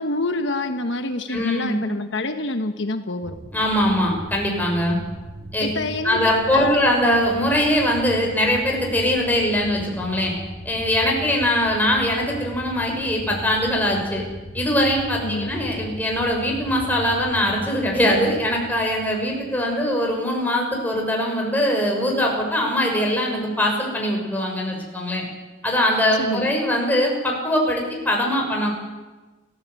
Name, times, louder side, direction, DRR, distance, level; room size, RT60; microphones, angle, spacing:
voice 1, 0.0-3.4 5.6-6.8 15.2-15.5 26.2-26.5, left 2 dB, 70° left, 7 dB, 1.3 m, -27 dB
voice 2, 1.3-1.8 3.5-5.0 5.5-5.7 6.0-10.3 10.6-14.2 14.5-25.2 25.6-28.7, left 1 dB, 10° left, 0 dB, 6.3 m, -22 dB
sound 1, 3.2-20.0, equal, 20° right, 1.2 m, -38 dB
30.0 x 14.5 x 8.4 m, 1.2 s
head